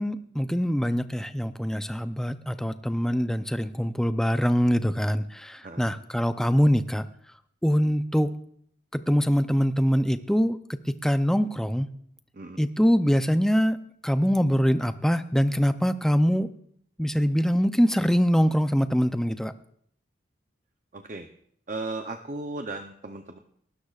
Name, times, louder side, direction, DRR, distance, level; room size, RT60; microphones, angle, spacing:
voice 1, 0.0-7.0 7.6-8.3 8.9-11.9 12.6-16.5 17.0-19.5, equal, 5° left, 10 dB, 0.5 m, -24 dB
voice 2, 5.6-5.9 12.3-12.6 20.9-21.3 21.7-23.4, right 2 dB, 40° right, 5 dB, 0.6 m, -36 dB
28.5 x 13.0 x 2.4 m, 0.67 s
head